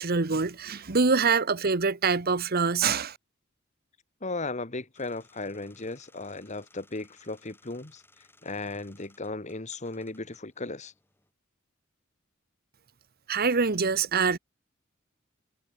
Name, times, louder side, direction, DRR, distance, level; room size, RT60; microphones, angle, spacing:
voice 1, 0.0-3.2 13.3-14.4, right 5 dB, 50° right, 1.1 m, -25 dB
voice 2, 4.2-8.0 8.4-10.9, left 3 dB, 35° left, 1.7 m, -36 dB
sound 1, 4.9-11.3, left 2 dB, 10° left, 7.9 m, -62 dB
head